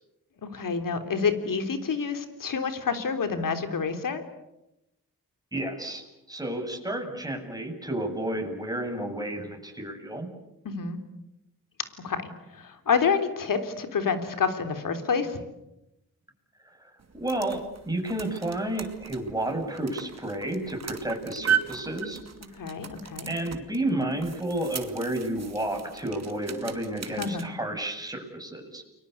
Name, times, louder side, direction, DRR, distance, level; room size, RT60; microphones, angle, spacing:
voice 1, 0.4-4.2 10.6-11.0 12.0-12.2 12.5-15.4 22.5-23.3 27.2-27.4, left 5 dB, 75° left, 8 dB, 3.7 m, -28 dB
voice 2, 5.5-10.3 16.8-16.9 17.2-22.2 23.3-28.8, right 1 dB, 10° right, 3 dB, 7.8 m, -31 dB
sound 1, 17.0-27.5, right 8 dB, 50° right, 2.6 m, -36 dB
30.0 x 22.5 x 8.4 m, 0.90 s
cardioid pair, 65°, 33 cm